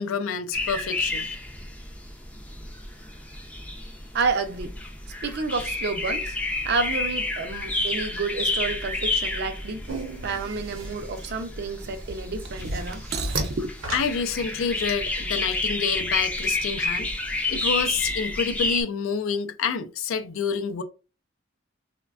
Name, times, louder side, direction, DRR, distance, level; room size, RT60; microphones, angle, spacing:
voice 1, 0.0-1.4 13.9-17.1 17.5-20.8, left 6 dB, 75° left, 0.4 m, -28 dB
sound 1, 0.5-18.8, left 2 dB, 5° left, 0.4 m, -30 dB
voice 2, 4.1-4.7 5.2-6.4 6.6-9.8 10.2-13.7, right 4 dB, 55° right, 0.5 m, -29 dB
sound 2, 9.9-14.9, right 2 dB, 80° right, 0.8 m, -34 dB
3.2 x 2.1 x 2.3 m
head